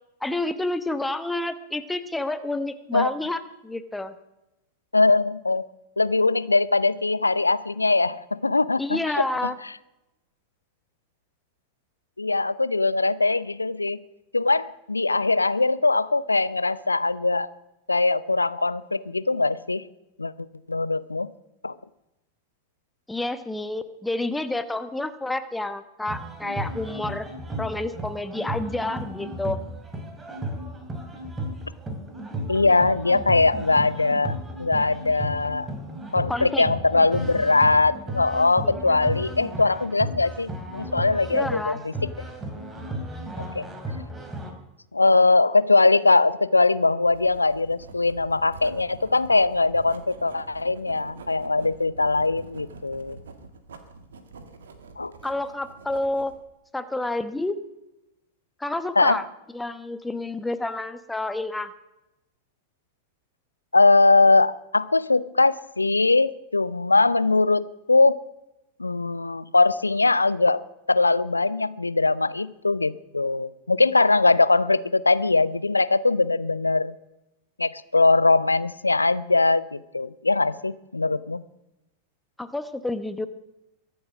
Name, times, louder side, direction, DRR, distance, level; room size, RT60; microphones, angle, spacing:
voice 1, 0.2-4.1 8.8-9.6 23.1-27.3 27.6-29.6 36.3-36.6 38.6-39.0 41.3-41.8 55.2-56.3 56.7-57.6 58.6-59.2 59.5-61.7 82.4-83.3, left 2 dB, 5° left, 11 dB, 1.1 m, -29 dB
voice 2, 4.9-5.7 6.0-9.3 12.2-14.0 14.3-17.5 17.9-19.8 20.2-21.3 21.6-21.7 32.5-35.7 36.1-41.9 43.6-43.7 44.9-53.2 55.0-55.1 59.0-59.2 63.7-68.2 68.8-70.6 70.9-77.0 77.6-81.4, left 3 dB, 80° left, 18 dB, 0.6 m, -21 dB
sound 1, 26.1-44.5, right 1 dB, 15° right, 2.9 m, -34 dB
Writing, 47.1-56.4, right 4 dB, 65° right, 1.8 m, -45 dB
23.0 x 8.0 x 6.2 m, 0.93 s
figure-of-eight pair, 90°, 0 cm